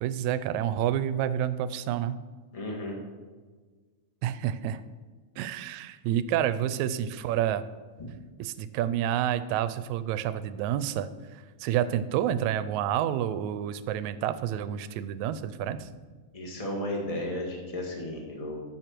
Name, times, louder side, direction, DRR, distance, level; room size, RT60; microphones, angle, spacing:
voice 1, 0.0-2.2 4.2-4.8 5.4-7.6 8.4-15.9, right 10 dB, 80° right, 14 dB, 1.9 m, -29 dB
voice 2, 2.5-3.0 16.3-18.7, left 1 dB, 20° left, 0 dB, 1.1 m, -34 dB
14.0 x 6.6 x 4.5 m, 1.4 s
omnidirectional pair, 3.5 m